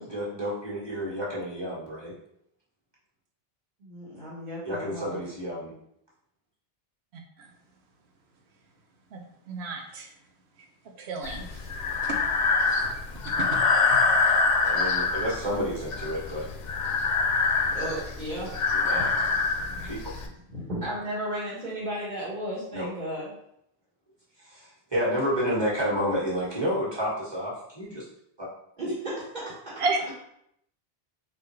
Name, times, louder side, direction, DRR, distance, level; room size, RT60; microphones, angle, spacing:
voice 1, 0.1-2.1 4.6-5.7 14.6-16.5 18.7-19.1 19.8-20.0 22.7-22.9 24.4-28.1 28.4-28.5, equal, 25° right, -7 dB, 1.6 m, -30 dB
voice 2, 3.8-5.2 17.7-18.6 18.9-19.1 19.6-20.0 20.5-23.3 28.8-29.4, equal, 50° right, -11 dB, 1.7 m, -34 dB
voice 3, 9.5-10.1 11.0-11.4 13.4-13.5 29.8-30.0, right 3 dB, 85° right, 2 dB, 1.1 m, -30 dB
Breathing, 11.2-20.3, left 4 dB, 55° left, 0.6 m, -25 dB
4.2 x 3.8 x 3.2 m, 0.75 s
omnidirectional pair, 1.1 m